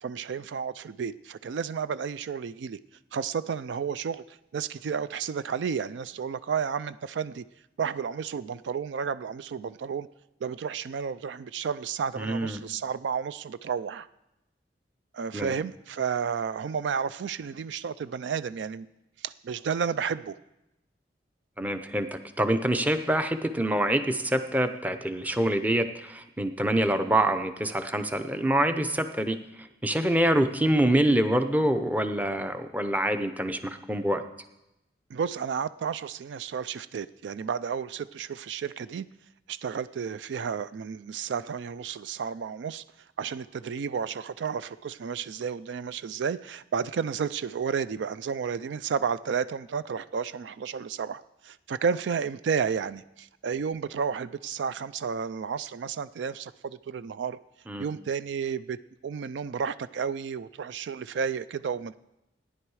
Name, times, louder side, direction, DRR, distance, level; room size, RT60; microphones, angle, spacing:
voice 1, 0.0-2.8 3.1-7.4 7.8-10.1 10.4-14.1 15.1-18.9 19.2-20.4 35.1-39.1 39.5-42.8 43.2-57.4 57.8-58.8 59.0-62.0, right 6 dB, 80° right, 15 dB, 0.4 m, -32 dB
voice 2, 12.2-12.6 15.3-15.5 21.6-29.4 29.8-34.2 57.7-57.9, right 1 dB, 10° right, 8 dB, 0.6 m, -26 dB
15.0 x 10.0 x 4.8 m, 0.92 s
head